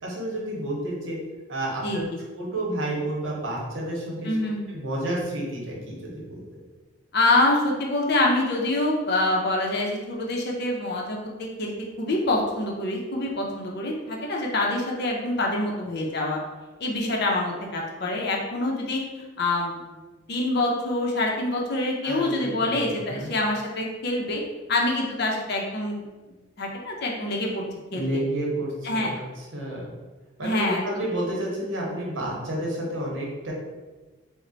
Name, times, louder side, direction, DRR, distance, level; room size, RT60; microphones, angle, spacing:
voice 1, 0.0-1.2 1.5-2.0 2.3-4.3 4.7-6.4 22.0-23.3 27.9-29.9 30.4-33.5, right 1 dB, 65° right, -3 dB, 0.9 m, -30 dB
voice 2, 1.8-2.2 4.2-4.7 7.1-16.4 16.8-19.0 19.4-20.0 20.3-24.4 24.7-27.6 27.9-28.0 28.8-29.1 30.4-30.8, left 2 dB, 55° left, -1 dB, 0.6 m, -26 dB
3.2 x 2.1 x 3.8 m, 1.2 s
head